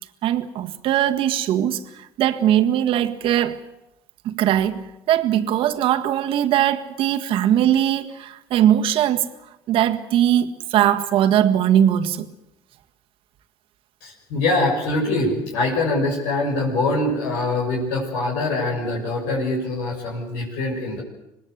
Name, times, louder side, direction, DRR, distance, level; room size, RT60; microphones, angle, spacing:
voice 1, 0.2-3.6 4.3-9.3 9.7-12.3, right 11 dB, 65° right, 1.7 m, -20 dB
voice 2, 14.0-21.0, left 2 dB, 85° left, 6.9 m, -23 dB
25.5 x 19.5 x 8.2 m
supercardioid pair, 85°, 10 cm